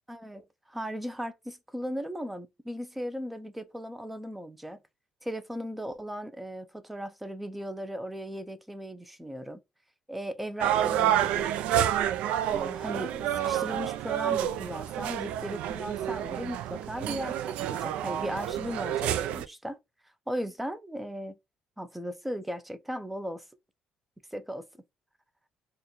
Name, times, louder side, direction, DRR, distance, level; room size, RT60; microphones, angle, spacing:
voice 1, 0.1-4.8 5.2-9.6 10.1-11.5 12.5-19.8 20.3-21.4 21.8-23.4 24.3-24.7, equal, 5° right, 0.4 m, -37 dB
sound 1, 10.6-19.4, right 11 dB, 80° right, 0.3 m, -29 dB
4.5 x 2.2 x 2.9 m
cardioid pair, 145°, 2 cm